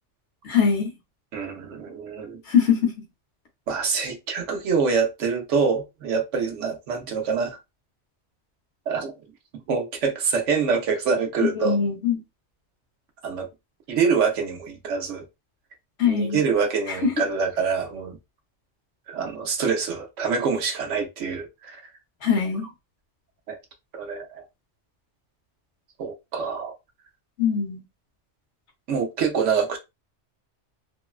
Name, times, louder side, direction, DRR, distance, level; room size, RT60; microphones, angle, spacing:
voice 1, 0.4-0.9 2.5-2.9 11.4-12.2 16.0-16.4 17.0-17.1 22.2-22.7 27.4-27.8, left 7 dB, 70° left, 1.2 m, -22 dB
voice 2, 1.3-2.4 3.7-7.6 8.9-9.1 9.7-11.8 13.2-13.5 13.9-15.2 16.0-18.2 19.1-21.8 23.5-23.6 23.9-24.4 26.0-26.7 28.9-29.8, right 5 dB, 80° right, 1.1 m, -25 dB
3.4 x 2.1 x 2.3 m
omnidirectional pair, 1.2 m